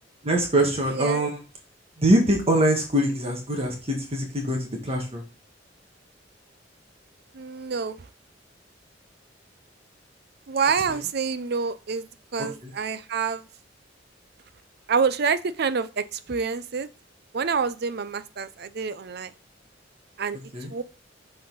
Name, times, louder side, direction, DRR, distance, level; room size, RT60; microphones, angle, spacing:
voice 1, 0.2-1.4 2.0-5.2 10.9-11.0 12.4-12.7 20.5-20.7, right 1 dB, 35° right, 1 dB, 1.7 m, -23 dB
voice 2, 0.9-1.3 7.3-8.0 10.5-12.1 12.3-13.4 14.9-16.9 17.3-19.3 20.2-20.4 20.7-20.8, right 5 dB, 60° right, 13 dB, 0.5 m, -27 dB
7.6 x 4.2 x 4.0 m, 0.33 s
head